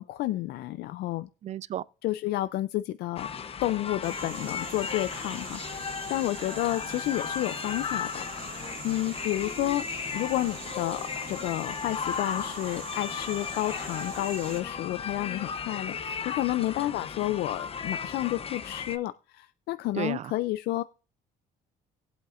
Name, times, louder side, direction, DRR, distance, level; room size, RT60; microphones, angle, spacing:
voice 1, 0.0-1.3 2.0-3.3 3.6-9.9 10.1-20.8, left 15 dB, 70° left, 0.4 m, -31 dB
voice 2, 1.4-1.8 19.9-20.3, right 11 dB, 40° right, 0.4 m, -33 dB
sound 1, 3.2-19.0, left 6 dB, 35° left, 0.7 m, -36 dB
sound 2, 4.0-14.6, right 7 dB, 60° right, 1.9 m, -43 dB
19.0 x 8.0 x 2.5 m
cardioid pair, 110°, 17 cm